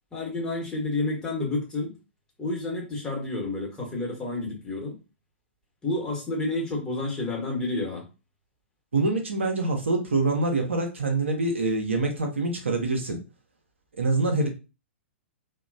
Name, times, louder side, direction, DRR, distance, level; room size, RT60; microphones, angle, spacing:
voice 1, 0.1-1.9 2.4-5.0 5.8-8.1, left 2 dB, 10° left, -3 dB, 1.0 m, -30 dB
voice 2, 8.9-13.2 14.0-14.5, right 2 dB, 70° right, 3 dB, 0.7 m, -25 dB
2.9 x 2.2 x 2.5 m, 0.30 s
figure-of-eight pair, 110°, 7 cm